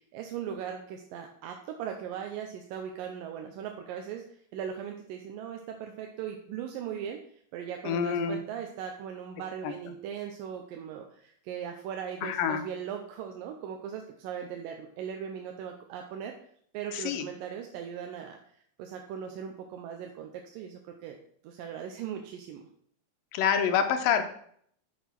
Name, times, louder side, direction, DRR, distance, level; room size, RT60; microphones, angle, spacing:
voice 1, 0.1-7.2 7.5-16.4 16.7-18.4 18.8-21.2 21.4-22.7, right 8 dB, 85° right, 3 dB, 2.5 m, -39 dB
voice 2, 7.8-8.4 9.6-9.7 12.2-12.6 16.9-17.3 23.3-24.3, left 7 dB, 85° left, 8 dB, 2.6 m, -27 dB
6.9 x 6.6 x 5.9 m, 0.62 s
omnidirectional pair, 3.9 m